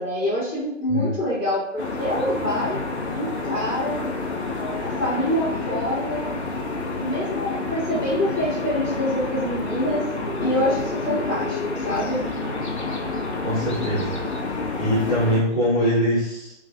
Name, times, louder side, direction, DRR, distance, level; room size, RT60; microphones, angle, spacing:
voice 1, 0.0-2.8 3.1-4.0 4.5-6.3 7.0-10.0 10.4-12.2, left 1 dB, 10° right, -14 dB, 1.2 m, -26 dB
sound 1, 1.8-15.4, left 3 dB, 60° left, 0.8 m, -29 dB
voice 2, 13.4-14.2 14.8-16.5, equal, 30° left, -10 dB, 1.5 m, -22 dB
3.6 x 3.0 x 2.5 m, 0.82 s
figure-of-eight pair, 140°, 38 cm